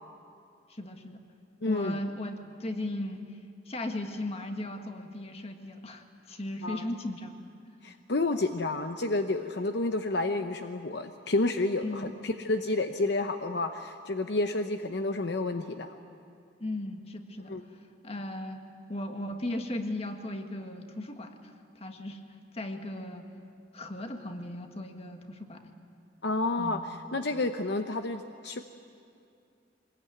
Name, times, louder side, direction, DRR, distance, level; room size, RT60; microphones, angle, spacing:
voice 1, 0.7-1.2 1.6-3.3 3.7-7.4 11.8-12.2 16.6-17.5 18.0-22.2 22.5-23.3 23.7-25.6 26.6-26.8, left 1 dB, 35° left, 5 dB, 1.7 m, -37 dB
voice 2, 1.6-2.0 6.6-6.8 7.8-15.9 17.5-17.6 26.2-26.8 27.1-28.6, left 2 dB, 65° left, 7 dB, 0.8 m, -30 dB
23.5 x 20.5 x 9.3 m, 2.4 s
head